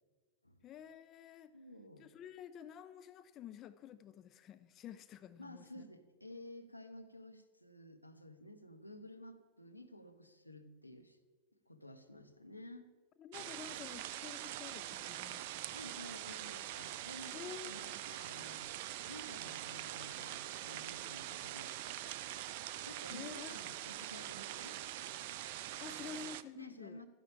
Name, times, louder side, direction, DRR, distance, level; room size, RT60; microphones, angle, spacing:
voice 1, 0.6-1.5 2.0-5.8 13.2-15.8 17.3-17.7 23.1-23.6 25.8-27.0, left 8 dB, 30° left, 13 dB, 0.4 m, -50 dB
voice 2, 1.5-2.1 5.4-11.2 11.7-12.9 15.7-18.6 19.1-21.8 22.2-22.3 22.8-25.3 25.7-27.1, left 1 dB, 85° left, 6 dB, 0.8 m, -53 dB
sound 1, 13.3-26.4, right 13 dB, 50° right, 0.4 m, -44 dB
12.5 x 10.0 x 3.5 m, 1.4 s
figure-of-eight pair, 90°, 0 cm